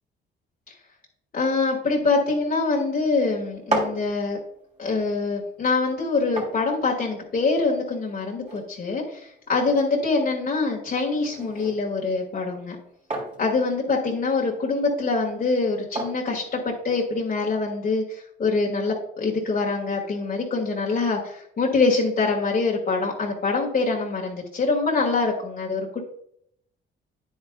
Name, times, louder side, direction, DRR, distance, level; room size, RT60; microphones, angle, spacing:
voice 1, 1.3-4.4 4.8-12.8 13.4-26.0, left 3 dB, 45° left, -2 dB, 2.0 m, -24 dB
sound 1, 3.4-17.3, right 2 dB, 35° right, 3.5 m, -37 dB
9.4 x 8.6 x 2.4 m, 0.71 s
cardioid pair, 90°, 20 cm